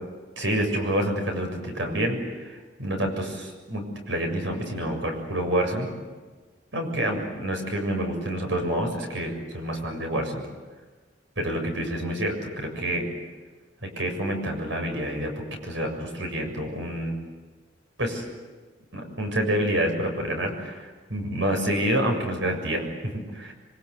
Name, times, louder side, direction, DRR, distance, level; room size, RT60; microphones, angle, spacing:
voice 1, 0.4-5.9 6.7-10.4 11.4-13.1 13.8-17.2 18.0-18.3 18.9-23.5, right 1 dB, 85° right, 3 dB, 7.2 m, -28 dB
27.5 x 24.5 x 8.3 m, 1.3 s
head